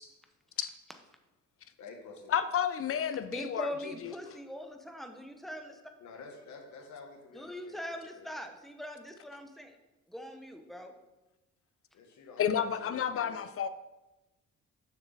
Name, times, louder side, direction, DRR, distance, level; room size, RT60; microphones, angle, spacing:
voice 1, 1.8-2.3 6.0-8.3 11.9-13.3, left 4 dB, 70° left, 2 dB, 1.5 m, -50 dB
voice 2, 2.3-3.7 4.0-4.1 12.4-13.7, left 8 dB, 50° left, 11 dB, 0.6 m, -31 dB
voice 3, 3.3-5.8 7.3-9.8 10.1-11.0, equal, ahead, 5 dB, 0.9 m, -41 dB
6.8 x 6.0 x 4.1 m, 1.0 s
cardioid pair, 90°, 30 cm